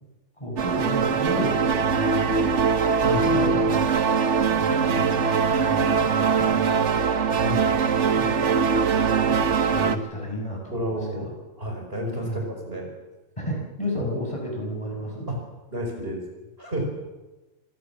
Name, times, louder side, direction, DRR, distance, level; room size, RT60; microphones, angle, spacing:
voice 1, 0.4-2.6 3.2-3.9 4.5-7.1 8.1-8.9 9.2-11.3 12.2-12.6 13.4-15.3, equal, 25° left, 0 dB, 6.0 m, -33 dB
sound 1, 0.6-10.0, right 6 dB, 65° right, 1.5 m, -22 dB
voice 2, 3.0-3.4 7.4-7.8 10.7-12.9 14.1-14.2 15.3-15.4 15.7-16.2 16.6-16.9, equal, 50° right, 2 dB, 5.4 m, -31 dB
26.5 x 16.5 x 7.3 m, 1.1 s
omnidirectional pair, 1.3 m